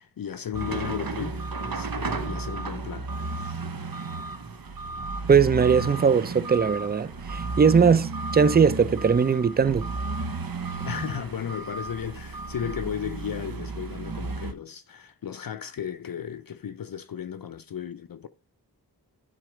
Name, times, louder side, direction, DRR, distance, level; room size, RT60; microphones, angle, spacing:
voice 1, 0.0-3.1 10.8-18.3, left 9 dB, 60° left, 0.5 m, -35 dB
sound 1, 0.5-14.5, right 3 dB, 60° right, 1.0 m, -33 dB
voice 2, 5.3-9.9, right 6 dB, 25° right, 0.4 m, -20 dB
7.6 x 4.0 x 4.9 m
wide cardioid pair, 45°, 40 cm